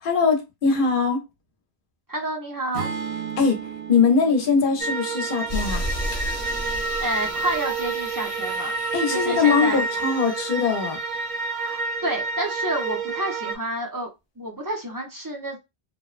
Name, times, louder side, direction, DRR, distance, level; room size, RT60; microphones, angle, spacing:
voice 1, 0.0-1.3 3.4-5.8 8.9-11.0, left 5 dB, 60° left, 0.8 m, -21 dB
voice 2, 2.1-2.9 7.0-8.7 9.1-9.8 11.5-14.1 14.4-15.6, right 1 dB, 25° right, 0.5 m, -29 dB
Acoustic guitar / Strum, 2.7-7.0, right 7 dB, 75° right, 1.1 m, -36 dB
sound 1, 4.8-13.6, right 4 dB, 60° right, 1.0 m, -29 dB
sound 2, 5.5-11.9, equal, 30° left, 0.7 m, -34 dB
2.9 x 2.0 x 2.4 m
omnidirectional pair, 1.1 m